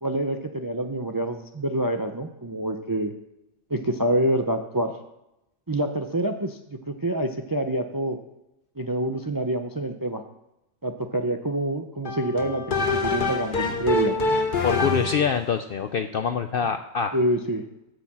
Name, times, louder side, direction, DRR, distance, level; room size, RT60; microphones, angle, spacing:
voice 1, 0.0-3.1 3.7-4.9 5.7-8.2 8.8-10.2 10.8-14.1 17.1-17.6, right 1 dB, 30° right, 6 dB, 0.4 m, -26 dB
sound 1, 12.0-15.4, left 3 dB, 40° left, 1.0 m, -25 dB
voice 2, 14.6-17.2, left 6 dB, 60° left, 8 dB, 0.6 m, -25 dB
9.6 x 6.5 x 7.5 m, 0.91 s
omnidirectional pair, 1.4 m